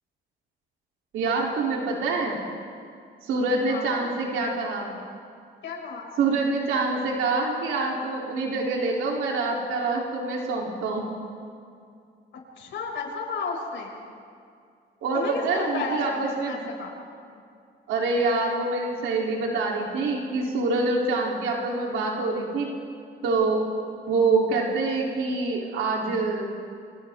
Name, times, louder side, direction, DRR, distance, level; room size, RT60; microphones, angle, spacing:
voice 1, 1.1-2.4 3.2-4.9 6.2-11.1 15.0-16.6 17.9-22.7 23.2-23.6 24.1-26.5, right 3 dB, 85° right, -2 dB, 3.2 m, -26 dB
voice 2, 3.7-4.1 5.6-6.1 12.6-14.0 15.1-17.0, left 4 dB, 70° left, -1 dB, 5.8 m, -33 dB
30.0 x 26.0 x 3.6 m, 2.3 s
cardioid pair, 90°, 20 cm